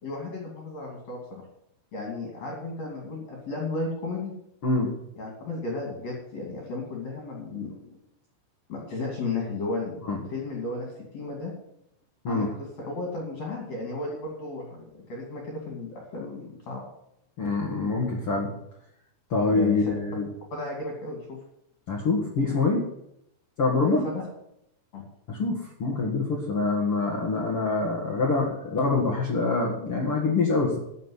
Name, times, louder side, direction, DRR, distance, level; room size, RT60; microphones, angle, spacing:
voice 1, 0.0-1.4 1.9-4.3 5.2-7.9 8.7-11.5 12.3-16.8 19.5-20.0 20.5-21.4 23.8-24.2 24.9-25.0, left 3 dB, 40° left, -1 dB, 3.2 m, -34 dB
voice 2, 4.6-4.9 10.0-10.2 12.2-12.5 17.4-18.5 19.3-20.3 21.9-22.9 23.6-24.1 25.3-30.8, left 3 dB, 85° left, -2 dB, 1.2 m, -25 dB
13.0 x 6.7 x 8.1 m, 0.78 s
omnidirectional pair, 5.9 m